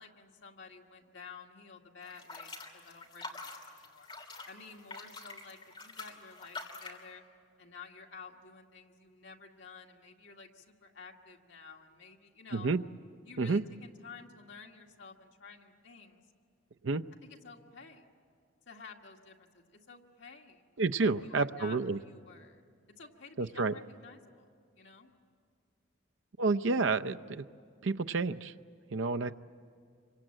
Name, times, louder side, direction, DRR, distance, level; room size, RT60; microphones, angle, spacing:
voice 1, 0.0-4.1 4.5-7.2 7.6-12.7 13.3-16.2 17.2-18.0 18.7-20.6 21.0-22.7 23.0-24.5 24.8-25.1 29.1-29.3, left 4 dB, 70° left, 1 dB, 2.0 m, -52 dB
sound 1, 2.0-7.0, left 3 dB, 25° left, 3.0 m, -46 dB
voice 2, 20.8-22.0 23.4-23.7 26.4-27.5 27.8-28.5 28.9-29.3, right 3 dB, 75° right, 9 dB, 0.6 m, -29 dB
26.5 x 24.5 x 8.9 m, 2.2 s
head